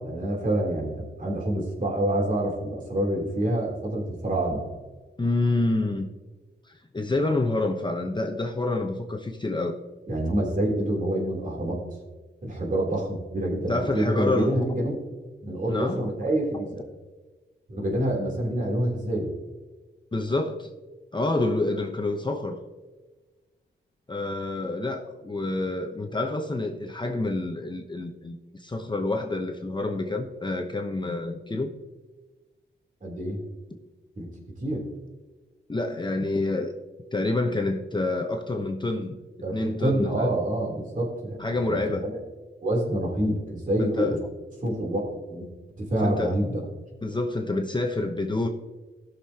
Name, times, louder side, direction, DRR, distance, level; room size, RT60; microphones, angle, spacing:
voice 1, 0.0-4.6 10.1-11.8 12.4-15.0 15.4-16.8 17.7-19.3 33.0-33.4 34.2-34.3 34.6-34.8 39.4-42.2 42.6-44.2 44.6-45.0 45.3-45.5 45.8-46.6, right 1 dB, 40° right, -2 dB, 3.3 m, -27 dB
voice 2, 5.2-6.1 6.7-9.8 13.7-14.5 15.7-16.1 16.5-16.6 20.1-20.7 21.1-22.6 24.1-31.7 35.7-36.7 37.1-39.2 39.5-40.3 41.4-42.1 43.8-44.2 46.0-46.4 47.0-48.5, left 2 dB, 25° left, 3 dB, 0.9 m, -28 dB
18.0 x 6.5 x 2.9 m, 1.3 s
wide cardioid pair, 95°, 20 cm